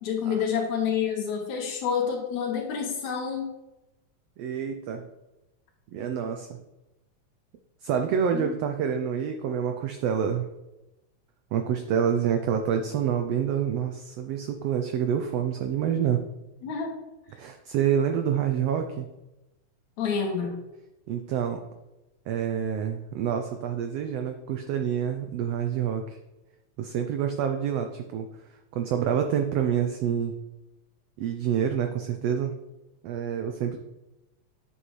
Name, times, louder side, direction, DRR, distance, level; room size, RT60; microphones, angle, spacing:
voice 1, 0.0-3.5 8.3-8.5 16.6-16.9 20.0-20.6, left 6 dB, 70° left, 2 dB, 2.5 m, -28 dB
voice 2, 4.4-5.1 5.9-6.6 7.8-10.5 11.5-16.2 17.4-19.1 21.1-21.6 22.3-26.2 26.8-28.3 28.7-30.3 31.2-32.5 33.0-33.8, right 8 dB, 85° right, 6 dB, 1.4 m, -27 dB
9.4 x 6.4 x 3.1 m, 0.97 s
omnidirectional pair, 3.4 m